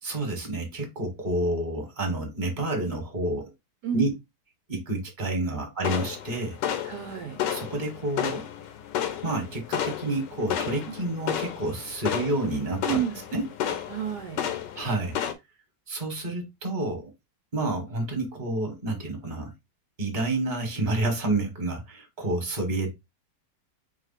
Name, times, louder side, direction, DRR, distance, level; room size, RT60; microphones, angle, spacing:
voice 1, 0.0-3.5 3.9-4.1 4.7-6.6 7.5-8.4 9.2-13.0 13.3-13.5 14.8-15.2 15.9-17.1 17.5-19.5 20.0-22.9, right 2 dB, 30° right, 1.4 m, -29 dB
sound 1, 5.8-15.3, left 10 dB, 80° left, 1.3 m, -32 dB
voice 2, 6.8-7.4 10.9-11.0 12.8-13.2 13.9-14.4, right 9 dB, 70° right, 1.2 m, -30 dB
4.5 x 2.3 x 4.1 m
omnidirectional pair, 2.0 m